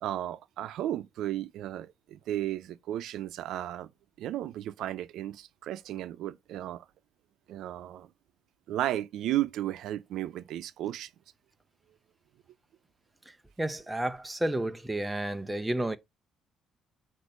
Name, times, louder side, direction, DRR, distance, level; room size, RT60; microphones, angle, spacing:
voice 1, 0.0-3.9 4.2-6.8 7.5-8.1 8.7-11.1, right 13 dB, 75° right, 0.6 m, -34 dB
voice 2, 13.6-16.0, right 1 dB, 10° right, 0.5 m, -31 dB
8.1 x 2.7 x 5.3 m
cardioid pair, 150°, 0 cm